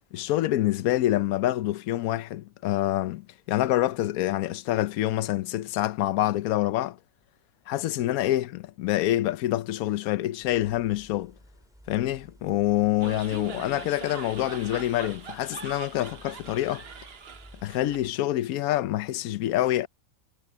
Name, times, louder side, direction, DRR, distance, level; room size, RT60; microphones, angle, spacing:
voice 1, 0.1-7.0 7.7-11.3 11.9-16.9 17.6-19.9, left 14 dB, 75° left, 1.1 m, -26 dB
sound 1, 10.4-18.1, equal, ahead, 4.5 m, -53 dB
sound 2, 13.0-18.0, right 5 dB, 45° right, 1.2 m, -42 dB
omnidirectional pair, 1.5 m